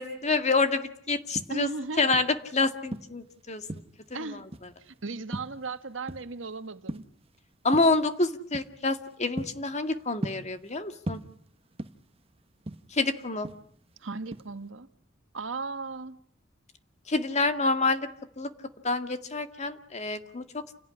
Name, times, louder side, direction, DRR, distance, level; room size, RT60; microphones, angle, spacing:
voice 1, 0.0-1.7 2.0-3.6 4.2-4.4 7.6-11.2 12.9-13.5 17.1-18.1 18.4-18.5 18.8-20.4, left 3 dB, 35° left, 2.1 m, -27 dB
sound 1, 1.2-2.4 2.9-4.1 4.5-4.9 5.3-6.5 6.7-7.3 7.7-8.0 8.5-8.8 9.1-10.8 11.1-12.2 12.5-14.0 14.3-14.6, right 1 dB, 30° right, 1.4 m, -38 dB
voice 2, 1.5-2.2 4.1-4.5 4.8-7.0 14.0-14.9 15.3-16.2, right 3 dB, 90° right, 1.5 m, -36 dB
29.5 x 17.5 x 9.9 m
head